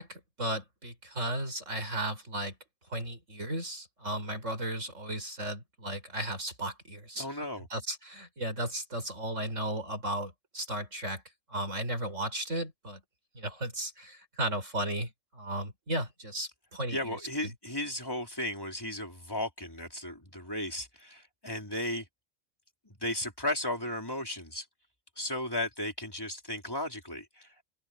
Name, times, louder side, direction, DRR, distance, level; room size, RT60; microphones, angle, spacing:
voice 1, 0.0-2.6 2.9-7.3 7.7-11.2 11.5-13.0 13.4-17.2, right 1 dB, 65° right, 6.9 m, -35 dB
voice 2, 7.2-7.7 16.9-22.1 22.8-24.7 25.2-27.7, left 1 dB, 15° left, 4.4 m, -35 dB
open air
omnidirectional pair, 1.4 m